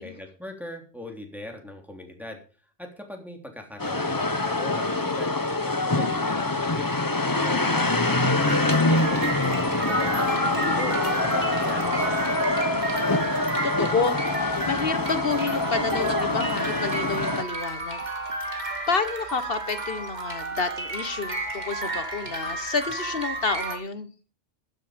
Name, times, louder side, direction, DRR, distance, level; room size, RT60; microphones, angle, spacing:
voice 1, 0.0-2.4 2.8-5.3 5.6-7.0 7.3-10.2 10.6-12.2, left 1 dB, ahead, 2 dB, 3.3 m, -40 dB
sound 1, 3.8-17.4, left 2 dB, 20° left, 1.0 m, -25 dB
sound 2, 8.5-23.8, right 2 dB, 35° right, 2.4 m, -32 dB
voice 2, 10.2-10.9 11.3-11.4 13.6-18.0 18.9-24.1, left 4 dB, 50° left, 11 dB, 1.4 m, -29 dB
15.5 x 10.0 x 5.2 m, 0.37 s
omnidirectional pair, 1.2 m